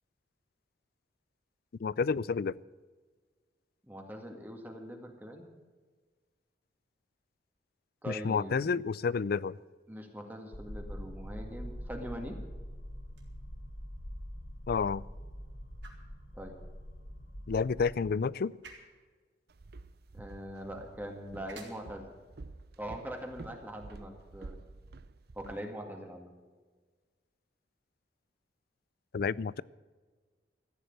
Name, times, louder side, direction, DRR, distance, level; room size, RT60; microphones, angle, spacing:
voice 1, 1.8-2.6 8.1-9.6 14.7-15.0 17.5-18.5 29.1-29.6, left 5 dB, 55° left, 22 dB, 0.4 m, -30 dB
voice 2, 3.8-5.5 8.0-8.6 9.9-12.4 16.3-16.6 20.1-22.1 22.8-24.6 25.3-26.3, equal, 10° right, 2 dB, 2.0 m, -42 dB
sound 1, 10.5-17.9, equal, 75° left, 3.8 m, -44 dB
sound 2, 13.0-25.1, right 4 dB, 90° right, 3.5 m, -60 dB
Walk footsteps, 19.5-25.6, right 3 dB, 60° right, 0.6 m, -50 dB
14.5 x 9.7 x 8.0 m, 1.4 s
head